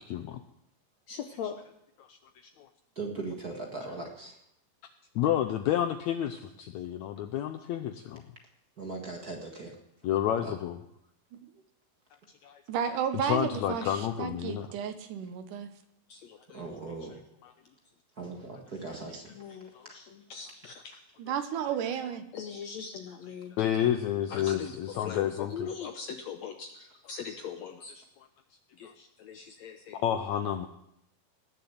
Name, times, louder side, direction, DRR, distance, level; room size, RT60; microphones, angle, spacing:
voice 1, 0.1-0.4 2.1-2.2 5.1-8.2 10.0-10.8 12.4-12.6 13.2-14.7 17.4-17.5 19.7-20.1 20.8-21.0 23.6-25.7 27.9-28.0 28.8-29.1 29.9-30.7, left 10 dB, 90° left, 8 dB, 1.6 m, -30 dB
voice 2, 1.1-1.5 16.1-16.6 19.4-19.7 20.3-20.8 22.3-23.9 24.3-27.9 28.8-28.9 29.2-30.0, left 7 dB, 70° left, 5 dB, 1.7 m, -40 dB
voice 3, 2.9-4.4 8.8-9.8 10.4-10.6 16.5-17.2 18.2-19.3 20.6-21.0 26.8-26.9 27.3-27.4, right 3 dB, 40° right, 1 dB, 1.5 m, -39 dB
voice 4, 12.7-15.7 21.2-22.2, right 8 dB, 70° right, 9 dB, 2.3 m, -32 dB
19.5 x 7.0 x 8.0 m, 0.79 s
omnidirectional pair, 4.0 m